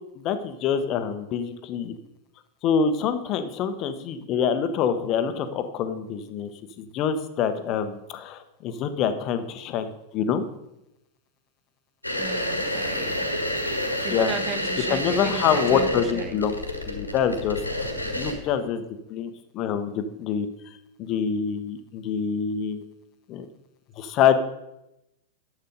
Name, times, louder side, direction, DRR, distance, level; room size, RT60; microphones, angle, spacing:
voice 1, 0.2-1.9 2.6-6.5 6.8-10.5 14.1-14.3 14.9-16.6 16.9-18.8 19.1-20.5 21.0-22.8 23.3-23.4 24.0-24.4, left 7 dB, 35° left, 10 dB, 1.0 m, -26 dB
sound 1, 12.0-18.3, left 1 dB, 90° left, 1.7 m, -29 dB
voice 2, 12.1-13.3 13.7-16.4, right 5 dB, 25° right, 9 dB, 1.2 m, -35 dB
10.5 x 7.9 x 5.3 m, 0.88 s
figure-of-eight pair, 90°, 0 cm